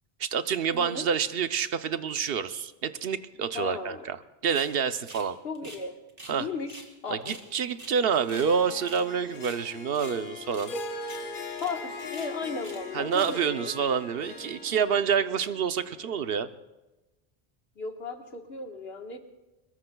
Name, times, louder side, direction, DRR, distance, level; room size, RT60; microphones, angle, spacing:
voice 1, 0.2-4.2 4.4-5.4 6.3-6.5 7.1-10.7 12.9-16.5, right 7 dB, 65° right, 11 dB, 0.9 m, -28 dB
voice 2, 0.7-1.1 3.5-4.0 5.4-6.0 6.4-7.4 11.6-13.7 17.8-19.2, left 4 dB, 70° left, 4 dB, 1.6 m, -36 dB
sound 1, 4.5-4.7 5.1-6.4 6.7-6.9 7.2-8.5 8.8-9.1 9.3-10.2 10.5-10.8 11.0-11.2 11.5-11.7 12.1-12.8 13.1-13.4, right 1 dB, 35° right, 2.3 m, -47 dB
Harp, 8.1-14.5, left 4 dB, 55° left, 0.9 m, -40 dB
Harp 2, 10.7-16.4, left 2 dB, 10° left, 5.5 m, -46 dB
23.5 x 21.5 x 2.3 m, 1.1 s
omnidirectional pair, 1.1 m